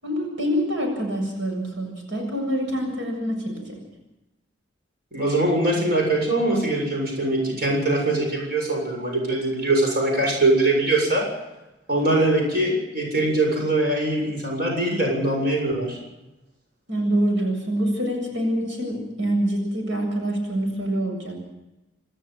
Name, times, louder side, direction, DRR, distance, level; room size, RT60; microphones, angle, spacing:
voice 1, 0.0-3.8 16.9-21.4, equal, 90° right, 2 dB, 7.5 m, -25 dB
voice 2, 5.1-11.2 11.9-16.0, right 2 dB, 50° right, 0 dB, 7.4 m, -22 dB
28.0 x 14.0 x 7.7 m, 0.98 s
head